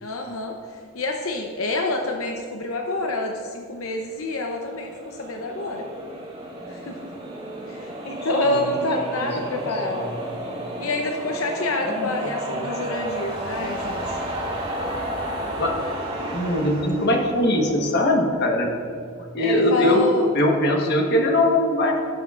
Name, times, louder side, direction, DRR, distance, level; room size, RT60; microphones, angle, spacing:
voice 1, 0.0-5.9 6.7-7.0 7.7-10.1 10.8-14.2 19.4-20.3, left 2 dB, 80° left, 2 dB, 0.7 m, -27 dB
sound 1, 4.3-18.6, right 1 dB, 30° right, 2.0 m, -32 dB
voice 2, 9.5-10.1 11.8-12.1 12.5-12.7 15.6-15.7 16.3-18.7 19.3-20.0 20.3-22.0, left 1 dB, 50° left, 1 dB, 1.2 m, -21 dB
16.5 x 6.9 x 2.5 m, 2.3 s
head